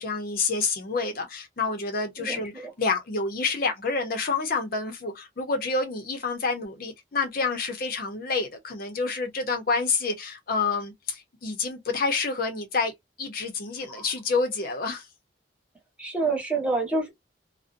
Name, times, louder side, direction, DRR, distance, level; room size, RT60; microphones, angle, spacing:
voice 1, 0.0-2.5 2.8-12.9 13.2-15.1, left 4 dB, 55° left, 0.6 m, -28 dB
voice 2, 2.2-2.7 13.9-14.0 16.0-17.1, right 3 dB, 5° right, 1.1 m, -28 dB
2.5 x 2.0 x 2.5 m
head